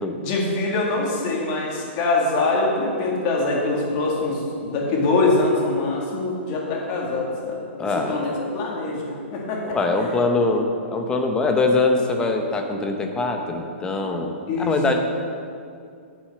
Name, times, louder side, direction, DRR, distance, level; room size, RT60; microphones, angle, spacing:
voice 1, 0.2-7.6 8.0-9.6 14.5-14.9, left 2 dB, 35° left, -2 dB, 2.0 m, -23 dB
voice 2, 7.8-8.2 9.7-14.3 14.6-14.9, left 3 dB, 10° left, 4 dB, 0.8 m, -22 dB
8.4 x 6.3 x 6.7 m, 2.3 s
hypercardioid pair, 155°, 7 cm